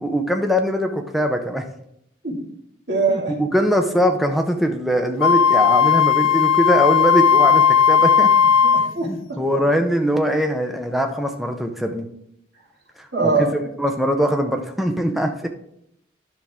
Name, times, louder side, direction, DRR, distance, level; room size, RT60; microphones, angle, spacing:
voice 1, 0.0-1.7 3.1-8.3 9.4-12.1 13.0-13.1 13.4-15.5, equal, ahead, 4 dB, 0.6 m, -21 dB
voice 2, 2.9-3.3 8.7-9.4 13.1-13.7, right 3 dB, 60° right, -4 dB, 2.3 m, -22 dB
Wind instrument woodwind instrument, 5.2-8.9, left 7 dB, 85° left, 0.6 m, -16 dB
10.5 x 6.1 x 3.5 m, 0.74 s
head